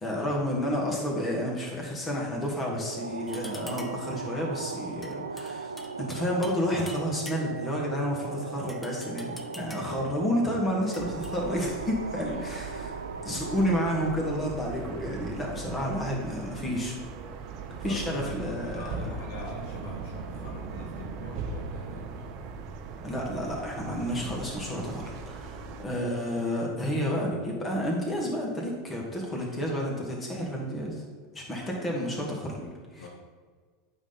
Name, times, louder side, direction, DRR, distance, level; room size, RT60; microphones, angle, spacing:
voice 1, 0.0-5.7 6.0-12.9 13.2-17.0 17.8-18.8 23.0-31.0 31.3-33.0, equal, 25° left, -1 dB, 2.6 m, -30 dB
sound 1, 2.9-14.4, right 4 dB, 90° right, 0.3 m, -38 dB
sound 2, 3.3-4.1 5.0-6.6 6.9-7.7 8.7-10.0 10.9-11.3, left 1 dB, 10° left, 1.0 m, -45 dB
sound 3, 11.0-25.9, right 5 dB, 55° right, 0.8 m, -39 dB
voice 2, 12.2-12.9 17.7-22.3 33.0-33.1, left 2 dB, 70° left, -1 dB, 1.4 m, -43 dB
8.9 x 6.3 x 4.1 m, 1.5 s
hypercardioid pair, 85°, 0 cm